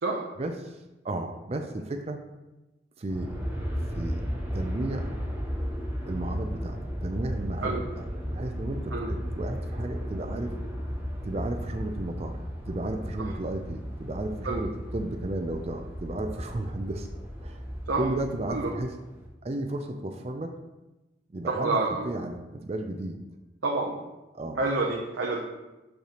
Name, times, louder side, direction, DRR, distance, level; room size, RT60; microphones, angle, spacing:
voice 1, 0.4-0.8 1.0-2.2 3.0-3.3 3.9-4.2 4.5-5.1 6.1-10.6 11.2-12.4 12.6-17.1 17.4-17.6 18.0-18.9 19.4-20.5 21.3-21.8 22.0-23.2 24.3-24.6, right 2 dB, 35° right, 5 dB, 0.4 m, -33 dB
Aircraft, 3.1-19.3, equal, 10° right, 0.9 m, -35 dB
voice 2, 21.4-22.1 23.6-24.0 24.6-25.4, right 3 dB, 85° right, -2 dB, 0.7 m, -27 dB
6.5 x 5.5 x 3.0 m, 1.0 s
head